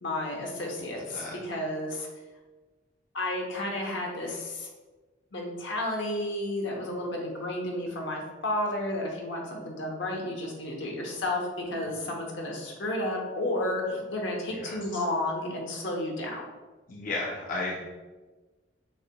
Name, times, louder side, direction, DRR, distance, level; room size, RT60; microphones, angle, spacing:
voice 1, 0.0-2.1 3.1-4.7 5.3-16.4, left 1 dB, 70° left, 0 dB, 0.9 m, -32 dB
voice 2, 16.9-17.8, left 2 dB, 45° left, -3 dB, 0.5 m, -33 dB
6.7 x 2.9 x 2.2 m, 1.2 s
head